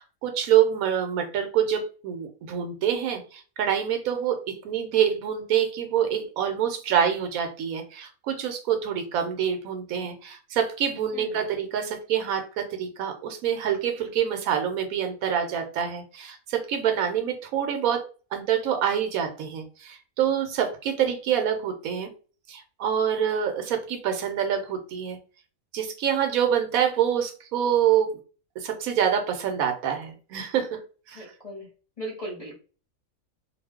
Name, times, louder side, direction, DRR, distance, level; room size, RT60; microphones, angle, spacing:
voice 1, 0.0-18.0 18.3-22.1 22.5-25.2 25.7-28.1 28.6-30.8 31.1-31.2, right 9 dB, 75° right, 6 dB, 1.0 m, -26 dB
voice 2, 31.1-31.7 32.0-32.5, equal, 30° left, -3 dB, 0.8 m, -37 dB
2.4 x 2.2 x 3.4 m, 0.37 s
omnidirectional pair, 1.5 m